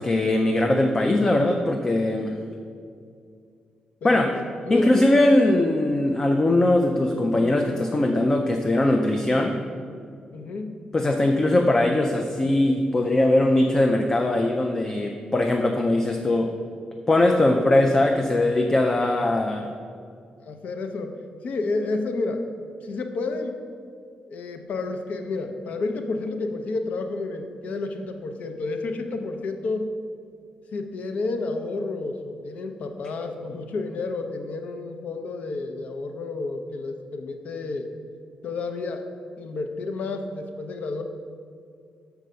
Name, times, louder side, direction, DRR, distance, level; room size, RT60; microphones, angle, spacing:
voice 1, 0.0-2.4 4.0-4.3 4.7-9.6 10.9-16.5 17.1-19.7, left 1 dB, 20° left, 3 dB, 0.4 m, -21 dB
voice 2, 4.0-5.1 10.3-10.7 20.5-21.1 21.4-22.4 22.8-23.6 24.3-29.9 30.7-37.9 38.4-39.1 39.4-41.0, left 3 dB, 65° left, 6 dB, 0.6 m, -30 dB
6.3 x 4.6 x 6.6 m, 2.3 s
wide cardioid pair, 180°, 3 cm